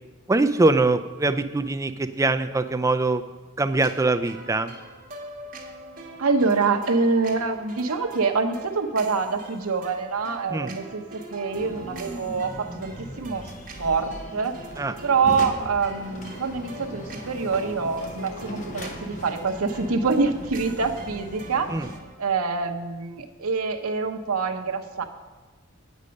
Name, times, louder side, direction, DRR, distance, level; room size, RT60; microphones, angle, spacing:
voice 1, 0.3-3.2 3.6-4.7 10.5-10.7 14.8-14.9 21.7-21.9, right 2 dB, 15° right, 9 dB, 0.3 m, -23 dB
sound 1, 3.8-22.2, right 2 dB, 40° right, 1.4 m, -44 dB
voice 2, 6.2-13.4 13.8-14.6 15.0-21.7 22.2-25.0, right 4 dB, 80° right, 4 dB, 0.8 m, -25 dB
sound 2, 11.5-22.0, left 1 dB, 35° left, 0.8 m, -39 dB
8.5 x 8.2 x 5.2 m, 1.2 s
head